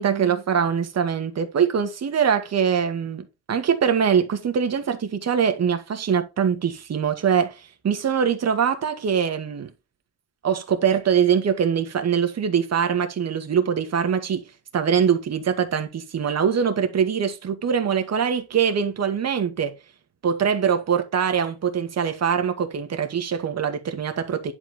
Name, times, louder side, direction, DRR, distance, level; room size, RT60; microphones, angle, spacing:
voice 1, 0.0-9.7 10.4-14.4 14.7-19.8 20.2-24.5, right 7 dB, 40° right, 2.1 m, -23 dB
11.0 x 5.3 x 3.7 m
cardioid pair, 120°, 40 cm